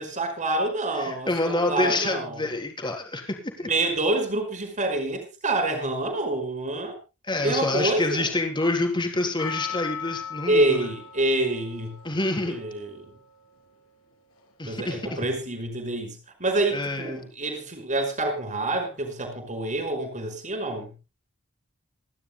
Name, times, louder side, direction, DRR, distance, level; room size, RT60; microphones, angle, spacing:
voice 1, 0.0-2.4 3.6-7.0 7.4-8.3 10.5-12.0 12.5-13.1 14.6-20.9, right 2 dB, 35° right, 5 dB, 5.4 m, -27 dB
voice 2, 1.0-3.7 7.2-10.9 12.0-12.6 14.6-15.3 16.7-17.3, left 2 dB, 20° left, 3 dB, 3.8 m, -27 dB
Percussion, 9.4-13.7 14.4-14.5, left 7 dB, 70° left, 7.4 m, -38 dB
28.5 x 12.0 x 2.2 m, 0.30 s
head